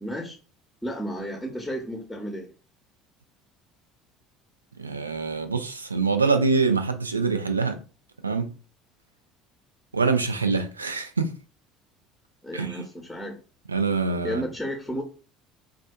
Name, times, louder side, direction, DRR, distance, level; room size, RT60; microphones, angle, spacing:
voice 1, 0.0-0.4 0.8-2.5 12.4-13.4 14.2-15.0, equal, 5° left, 0.8 m, -32 dB
voice 2, 4.8-7.8 8.2-8.5 9.9-11.3 12.5-12.9 13.7-14.4, right 4 dB, 85° right, 0.3 m, -25 dB
4.2 x 2.3 x 2.2 m
figure-of-eight pair, 60°, 0 cm